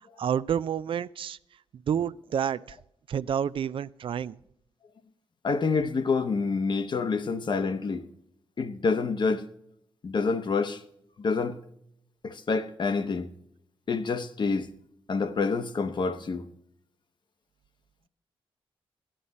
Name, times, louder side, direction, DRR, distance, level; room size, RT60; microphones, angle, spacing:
voice 1, 0.2-1.4 1.9-2.8 3.1-4.4, right 8 dB, 65° right, 0.3 m, -29 dB
voice 2, 5.4-8.1 8.6-9.5 10.0-10.8 11.2-11.6 12.2-13.3 13.9-14.7 15.1-16.5, left 4 dB, 50° left, 0.8 m, -27 dB
13.0 x 10.0 x 4.1 m
cardioid pair, 80°, 10 cm